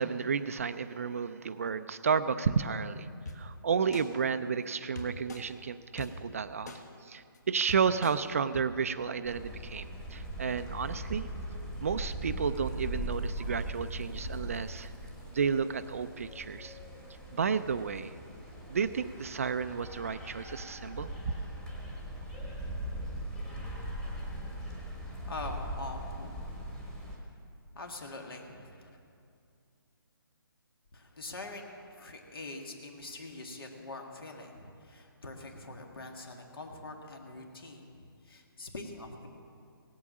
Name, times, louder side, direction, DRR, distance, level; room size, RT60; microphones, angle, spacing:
voice 1, 0.0-3.1 3.3-11.3 11.8-14.9 15.3-16.8 17.3-18.2 18.7-21.3, right 6 dB, 35° right, 11 dB, 0.4 m, -32 dB
sound 1, 3.3-3.4 3.9-4.1 5.0-5.4 6.0-6.1 6.7-6.8 7.3-7.4 7.7-8.1 8.5-8.6, left 4 dB, 45° left, 1.5 m, -41 dB
sound 2, 9.2-27.2, right 1 dB, 5° left, 1.3 m, -40 dB
voice 2, 25.2-26.3 27.7-28.9 30.9-39.3, left 2 dB, 70° left, 2 dB, 2.0 m, -44 dB
17.0 x 8.5 x 7.4 m, 2.4 s
hypercardioid pair, 165°, 13 cm